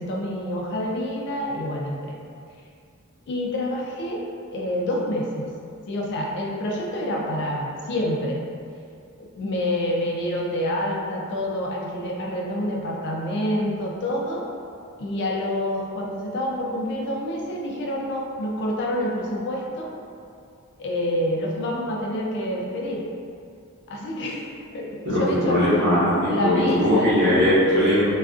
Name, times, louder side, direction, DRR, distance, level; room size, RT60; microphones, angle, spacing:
voice 1, 0.0-2.2 3.3-4.2 4.5-5.5 5.9-8.4 9.2-14.5 15.0-19.9 20.8-23.1 23.9-24.4 24.7-25.6 26.3-27.5, left 1 dB, 55° left, -2 dB, 0.3 m, -27 dB
voice 2, 25.0-28.1, equal, 50° right, -9 dB, 0.8 m, -20 dB
2.4 x 2.2 x 2.4 m, 2.3 s
head